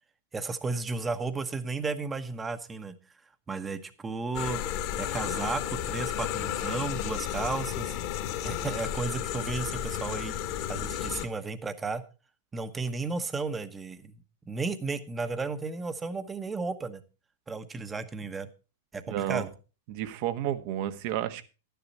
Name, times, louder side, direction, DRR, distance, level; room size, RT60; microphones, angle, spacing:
voice 1, 0.3-3.0 3.5-4.6 5.0-8.0 8.4-10.4 10.7-12.0 12.5-14.1 14.5-17.0 17.5-18.5 18.9-19.5, right 3 dB, 15° right, 11 dB, 1.1 m, -33 dB
sound 1, 4.3-11.3, left 10 dB, 50° left, 1.8 m, -33 dB
voice 2, 19.1-19.5 19.9-21.4, right 11 dB, 50° right, 11 dB, 1.3 m, -31 dB
12.0 x 10.5 x 4.3 m, 0.33 s
hypercardioid pair, 105°, 0 cm